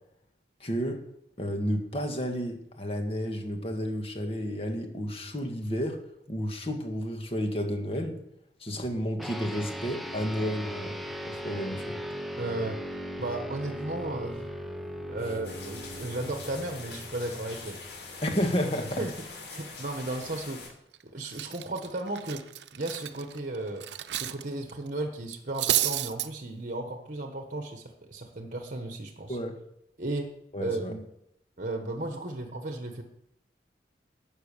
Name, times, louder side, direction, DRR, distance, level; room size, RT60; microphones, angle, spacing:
voice 1, 0.6-1.0 1.4-6.0 6.3-8.2 8.6-11.0 11.3-12.0 18.2-19.0 29.3-29.6 30.5-30.9, equal, 35° left, 4 dB, 2.0 m, -31 dB
sound 1, 9.2-18.9, equal, ahead, 0.9 m, -39 dB
voice 2, 12.4-14.4 15.1-17.8 19.0-19.1 19.5-20.8 21.0-22.4 22.7-23.9 24.1-29.4 30.0-30.3 30.6-31.0 31.6-33.0, right 2 dB, 45° right, 5 dB, 1.3 m, -35 dB
sound 2, 15.4-20.7, left 4 dB, 85° left, 6.6 m, -43 dB
Cutlery silverware, 20.7-21.0 21.3-24.4 24.7-24.9 25.3-26.3, right 13 dB, 80° right, 0.7 m, -31 dB
12.5 x 8.3 x 6.8 m, 0.77 s
head